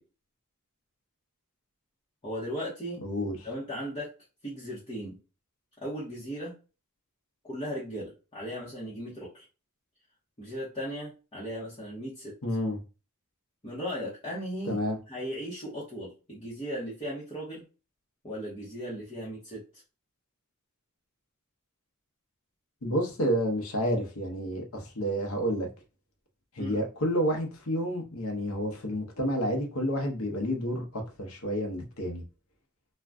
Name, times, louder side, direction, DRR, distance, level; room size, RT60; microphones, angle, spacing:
voice 1, 2.2-3.0 3.4-4.1 4.4-5.2 5.8-6.5 7.4-9.4 10.4-12.3 13.6-14.8 15.1-17.6 18.2-19.8 26.6-26.8, equal, 25° left, 0.9 m, -37 dB
voice 2, 3.0-3.4 12.4-12.8 14.6-15.0 22.8-25.7 26.5-32.2, equal, 65° left, 0.8 m, -30 dB
2.5 x 2.2 x 3.3 m
head